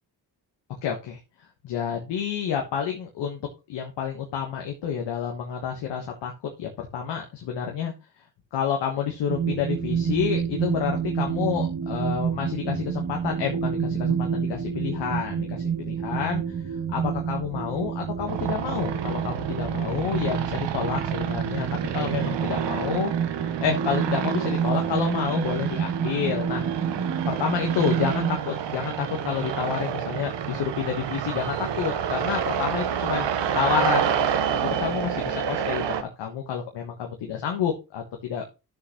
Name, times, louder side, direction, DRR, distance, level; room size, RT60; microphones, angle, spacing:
voice 1, 0.8-1.2 1.6-3.4 3.7-7.9 8.5-23.1 23.6-26.7 27.3-33.3 33.5-34.2 34.5-38.4, left 8 dB, 85° left, 2 dB, 1.5 m, -29 dB
sound 1, 9.3-28.4, right 7 dB, 40° right, 2.1 m, -29 dB
sound 2, 18.3-36.0, right 8 dB, 75° right, 1.1 m, -29 dB
11.0 x 6.6 x 3.1 m, 0.28 s
supercardioid pair, 50°, 43 cm